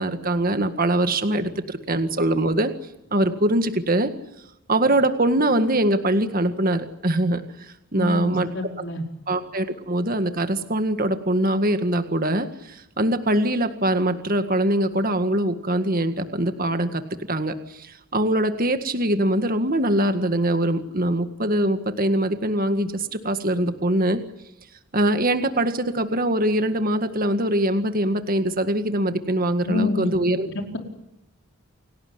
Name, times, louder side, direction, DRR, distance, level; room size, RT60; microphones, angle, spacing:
voice 1, 0.0-2.7 3.1-4.1 4.7-8.5 9.3-17.0 17.3-24.2 24.9-30.5, right 1 dB, 40° right, 8 dB, 1.9 m, -23 dB
voice 2, 8.0-9.0 29.6-30.1 30.5-30.8, left 2 dB, 55° left, 3 dB, 4.8 m, -27 dB
29.0 x 18.5 x 9.8 m, 0.90 s
head